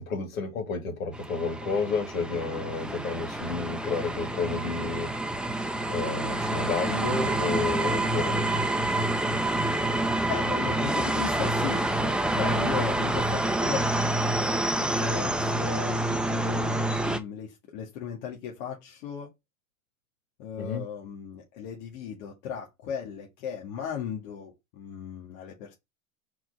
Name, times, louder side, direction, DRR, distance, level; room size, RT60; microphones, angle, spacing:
voice 1, 0.0-5.1 5.9-8.4 20.6-20.8, left 4 dB, 80° left, 3.0 m, -31 dB
sound 1, 1.1-17.2, right 1 dB, ahead, 0.8 m, -27 dB
voice 2, 10.3-13.9 14.7-19.3 20.4-25.7, left 8 dB, 65° left, 2.1 m, -36 dB
4.6 x 4.2 x 5.4 m
hypercardioid pair, 110°, 40 cm